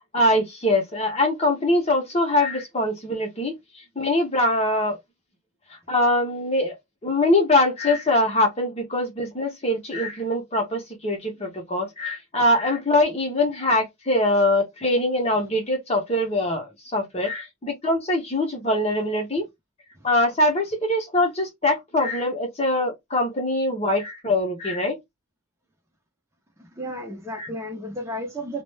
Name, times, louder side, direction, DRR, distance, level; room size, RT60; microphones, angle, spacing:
voice 1, 0.1-3.5 4.0-5.0 5.9-6.7 7.0-19.4 20.0-25.0 27.4-27.5, left 1 dB, 30° left, 0.7 m, -23 dB
voice 2, 26.6-28.6, equal, 15° right, 0.6 m, -33 dB
2.3 x 2.1 x 3.2 m
head